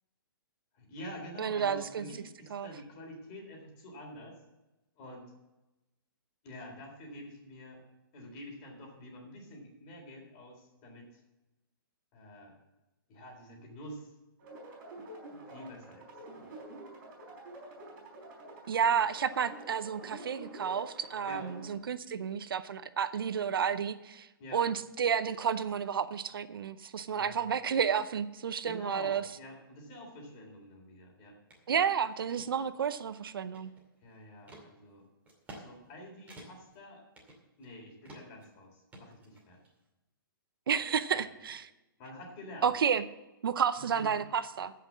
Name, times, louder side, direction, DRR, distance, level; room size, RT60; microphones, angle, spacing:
voice 1, 0.7-4.4 5.0-5.3 6.4-7.8 8.1-11.2 12.1-12.6 13.1-14.1 15.5-16.1 21.3-21.5 24.4-24.6 27.2-27.4 28.6-31.4 34.0-35.0 35.6-37.0 37.6-39.6 41.2-41.3 42.0-42.7 44.0-44.2, left 1 dB, 30° left, 1 dB, 3.7 m, -47 dB
voice 2, 1.4-2.0 2.5-2.7 18.7-29.2 31.7-33.7 40.7-41.7 42.6-43.0 43.4-44.7, right 7 dB, 75° right, 13 dB, 0.7 m, -31 dB
sound 1, 14.4-21.7, right 1 dB, 35° right, 4.7 m, -48 dB
sound 2, 31.5-31.6 32.1-32.5 33.0-34.0 34.5-34.7 35.3-35.6 35.9-36.0 36.3-36.7 37.1-37.7 38.0-38.4 38.9-39.7, right 1 dB, 10° right, 2.4 m, -51 dB
14.0 x 5.9 x 7.3 m, 1.0 s
hypercardioid pair, 150°, 12 cm